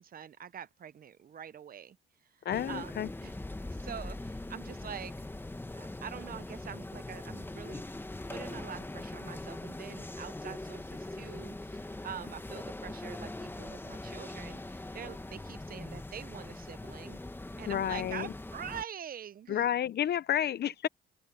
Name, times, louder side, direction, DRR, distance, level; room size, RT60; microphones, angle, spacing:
voice 1, 0.0-2.0 2.4-3.3 3.7-5.1 5.7-7.8 8.3-17.2 17.6-19.7, right 9 dB, 45° right, 0.7 m, -45 dB
voice 2, 2.4-3.1 17.7-18.3 19.5-20.9, left 10 dB, 55° left, 0.7 m, -30 dB
sound 1, 2.5-18.8, left 2 dB, 10° left, 1.2 m, -42 dB
open air
cardioid pair, 90°, 20 cm